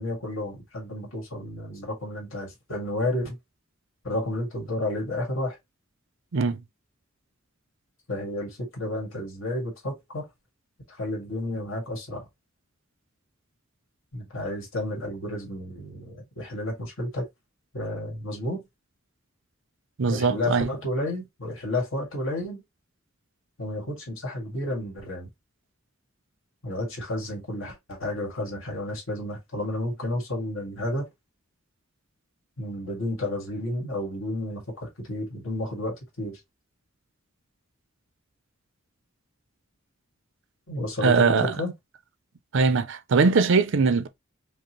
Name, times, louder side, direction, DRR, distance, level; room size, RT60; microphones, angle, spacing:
voice 1, 0.0-3.4 4.0-5.6 8.1-10.3 10.9-12.3 14.1-17.2 17.7-18.6 20.1-22.6 23.6-25.3 26.6-31.1 32.6-36.4 40.7-41.7, left 1 dB, 75° left, 1.8 m, -31 dB
voice 2, 20.0-20.7 41.0-41.6 42.5-44.1, right 4 dB, 65° right, 0.5 m, -21 dB
5.1 x 2.0 x 3.0 m
head